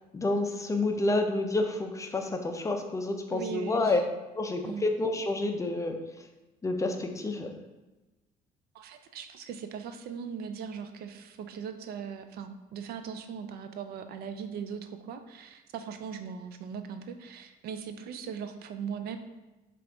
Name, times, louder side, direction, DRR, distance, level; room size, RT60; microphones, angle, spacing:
voice 1, 0.1-4.0 4.4-6.0 6.6-7.5, left 2 dB, 20° left, 4 dB, 0.4 m, -29 dB
voice 2, 3.3-4.0 4.6-4.8 8.7-19.2, right 7 dB, 70° right, 8 dB, 0.4 m, -39 dB
5.1 x 2.5 x 3.4 m, 1.1 s
cardioid pair, 110°, 17 cm